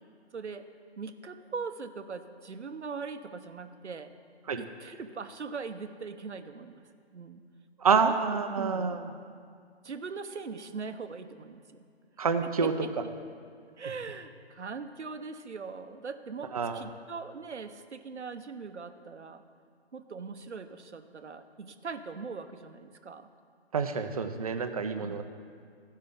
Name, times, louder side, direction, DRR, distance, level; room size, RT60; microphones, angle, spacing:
voice 1, 0.3-0.7 1.0-4.2 4.6-6.8 7.1-7.5 8.0-8.1 8.5-9.0 9.8-11.8 12.4-12.9 13.8-19.4 19.9-23.3 25.0-25.2, right 5 dB, 90° right, 9 dB, 0.8 m, -41 dB
voice 2, 7.8-9.0 12.2-12.7 16.5-16.8 23.7-25.2, right 5 dB, 35° right, 7 dB, 0.5 m, -27 dB
14.0 x 5.6 x 5.1 m, 2.2 s
figure-of-eight pair, 145°, 34 cm